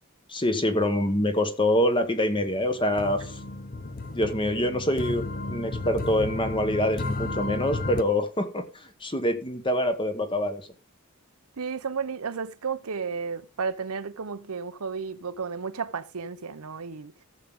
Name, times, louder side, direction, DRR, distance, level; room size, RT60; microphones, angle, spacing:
voice 1, 0.3-3.4 4.1-10.7, left 1 dB, 20° left, 1.3 m, -25 dB
sound 1, 2.4-8.0, left 2 dB, 40° left, 0.8 m, -33 dB
voice 2, 11.6-17.1, right 5 dB, 80° right, 0.8 m, -33 dB
14.5 x 7.5 x 3.7 m
head